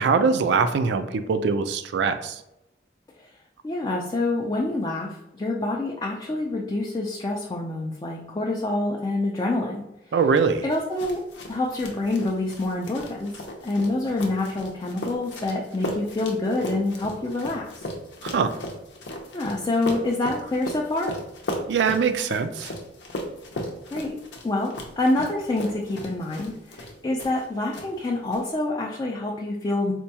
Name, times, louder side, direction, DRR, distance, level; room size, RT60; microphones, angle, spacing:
voice 1, 0.0-2.4 10.1-10.6 18.2-18.5 21.7-22.7, right 5 dB, 75° right, 9 dB, 0.3 m, -22 dB
voice 2, 3.6-9.8 10.6-11.2 11.5-13.3 13.6-17.8 19.3-21.1 23.9-24.1 24.4-29.9, left 2 dB, 25° left, -2 dB, 0.3 m, -27 dB
sound 1, 10.7-27.5 27.7-28.4, left 1 dB, 85° left, 0.6 m, -36 dB
4.3 x 2.2 x 2.8 m, 0.88 s
head